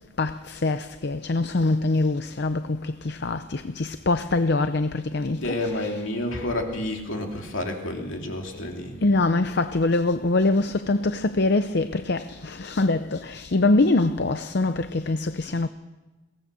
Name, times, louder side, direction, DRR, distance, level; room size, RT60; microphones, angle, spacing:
voice 1, 0.2-5.4 9.0-15.7, left 2 dB, 55° left, 0.6 m, -24 dB
voice 2, 5.2-9.0, left 1 dB, 70° left, 2.9 m, -30 dB
22.5 x 17.5 x 6.9 m
head